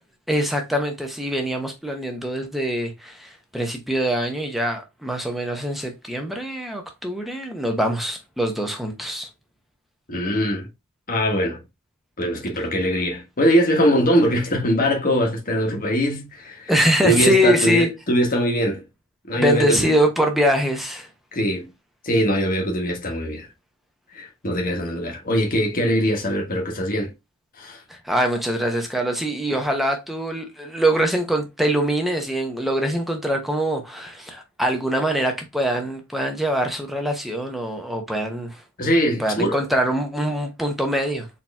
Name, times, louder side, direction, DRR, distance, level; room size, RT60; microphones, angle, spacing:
voice 1, 0.3-9.3 16.7-17.9 19.4-21.1 27.9-38.6 39.2-41.3, equal, ahead, 0.8 m, -23 dB
voice 2, 10.1-10.7 11.1-11.6 12.2-16.7 17.0-18.8 19.3-19.9 21.3-21.7 22.0-23.5 24.1-27.1 27.6-27.8 38.8-39.7, equal, 40° left, 1.3 m, -22 dB
4.3 x 3.0 x 3.4 m
head